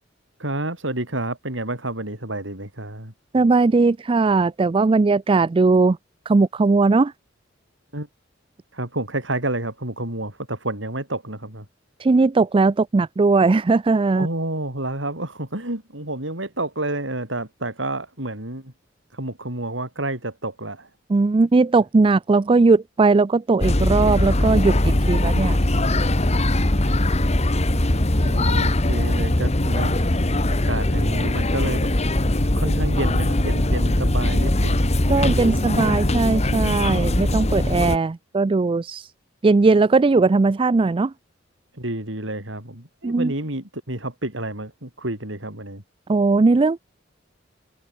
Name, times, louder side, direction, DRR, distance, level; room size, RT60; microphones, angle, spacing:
voice 1, 0.4-3.1 7.9-8.1 8.7-11.7 14.1-18.7 19.1-20.9 28.2-31.9 32.5-34.9 35.2-35.6 41.7-45.8, right 1 dB, 75° right, 7.4 m, -29 dB
voice 2, 3.3-6.0 6.3-7.1 12.0-14.3 21.1-25.6 35.1-39.1 39.4-41.1 43.0-43.3 46.1-46.8, right 3 dB, 30° right, 0.4 m, -18 dB
sound 1, 23.6-38.0, left 1 dB, 35° left, 1.7 m, -21 dB
open air
head